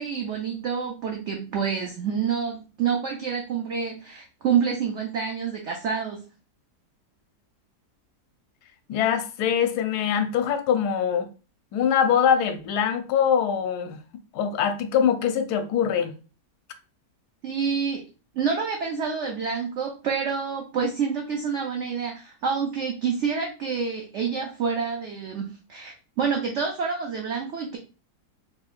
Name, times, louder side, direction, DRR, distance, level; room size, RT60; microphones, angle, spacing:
voice 1, 0.0-6.2 17.4-18.0 18.3-27.8, right 6 dB, 65° right, 0.7 m, -28 dB
voice 2, 8.9-11.3 11.7-14.0 14.3-16.1, left 8 dB, 75° left, 1.1 m, -23 dB
4.3 x 3.0 x 2.4 m
omnidirectional pair, 1.8 m